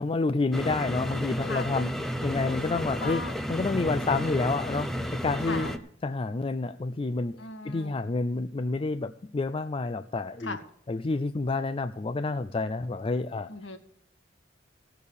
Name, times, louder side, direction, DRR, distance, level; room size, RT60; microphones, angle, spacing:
voice 1, 0.0-1.9 2.2-3.2 3.5-4.9 5.2-5.7 6.0-10.6 10.9-13.5, left 3 dB, 30° left, 10 dB, 0.4 m, -29 dB
sound 1, 0.5-5.8, equal, ahead, 0.7 m, -32 dB
voice 2, 1.4-1.8 2.5-3.3 3.9-4.4 5.4-5.7 7.4-7.9 10.4-10.6 13.5-13.8, left 3 dB, 65° left, 6 dB, 1.7 m, -38 dB
16.0 x 7.0 x 6.5 m, 0.69 s
head